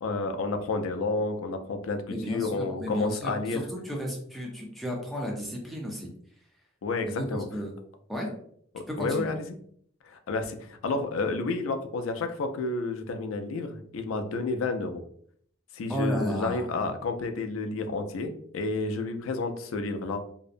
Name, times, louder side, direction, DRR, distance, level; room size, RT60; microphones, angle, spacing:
voice 1, 0.0-3.7 6.8-7.5 8.7-9.5 10.0-15.0 15.7-20.2, left 3 dB, 90° left, 7 dB, 0.4 m, -30 dB
voice 2, 2.1-6.1 7.1-7.7 8.1-8.3 8.9-9.3 15.9-16.9, equal, ahead, -1 dB, 0.5 m, -33 dB
2.6 x 2.0 x 2.5 m, 0.62 s
head